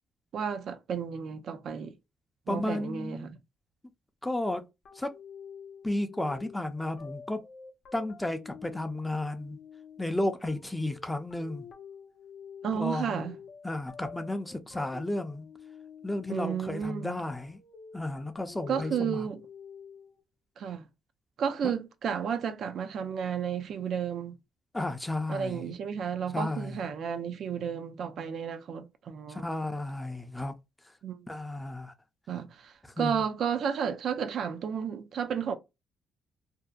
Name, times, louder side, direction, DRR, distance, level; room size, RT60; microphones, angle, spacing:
voice 1, 0.3-1.9 2.5-3.4 12.6-13.4 16.3-17.2 18.7-19.4 20.6-20.9 21.4-24.4 25.3-29.5 31.0-31.3 32.3-35.6, right 7 dB, 65° right, 0.4 m, -32 dB
voice 2, 2.5-3.3 4.2-4.6 5.0-5.1 5.8-7.4 7.9-9.6 10.0-11.7 12.7-13.4 13.6-15.5 16.0-17.6 17.9-19.3 24.7-25.7 26.3-26.9 29.3-30.5 31.3-31.9 33.0-33.2, left 1 dB, 10° left, 0.4 m, -33 dB
sound 1, 4.8-20.2, left 6 dB, 65° left, 0.5 m, -49 dB
2.6 x 2.1 x 2.3 m
cardioid pair, 90°, 0 cm